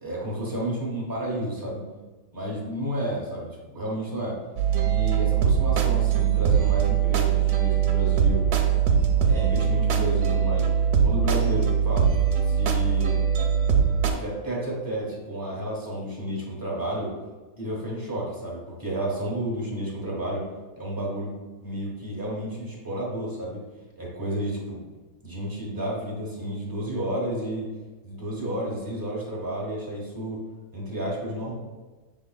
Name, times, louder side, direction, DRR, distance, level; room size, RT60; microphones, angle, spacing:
voice 1, 0.0-1.8 2.3-4.4 4.8-8.4 9.3-13.2 14.1-17.1 17.6-20.5 20.8-21.3 21.6-23.6 24.0-24.8 25.2-27.6 28.0-30.4 30.7-31.5, right 1 dB, 15° right, -5 dB, 1.0 m, -31 dB
sound 1, 4.6-14.1, right 8 dB, 90° right, 1.1 m, -22 dB
6.8 x 3.5 x 2.2 m, 1.3 s
omnidirectional pair, 1.6 m